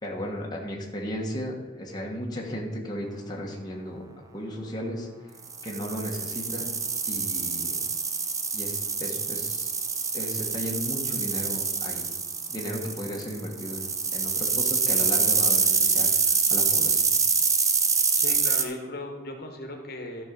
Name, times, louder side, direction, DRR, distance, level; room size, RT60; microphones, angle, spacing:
voice 1, 0.0-4.0 4.3-5.3 5.6-6.6 7.1-7.8 8.5-9.7 10.1-12.1 12.5-17.0, equal, 20° left, -2 dB, 1.4 m, -35 dB
sound 1, 5.5-18.6, right 5 dB, 20° right, 0.7 m, -26 dB
voice 2, 18.2-20.2, left 1 dB, 55° left, 3 dB, 1.5 m, -37 dB
13.0 x 5.5 x 5.2 m, 1.3 s
head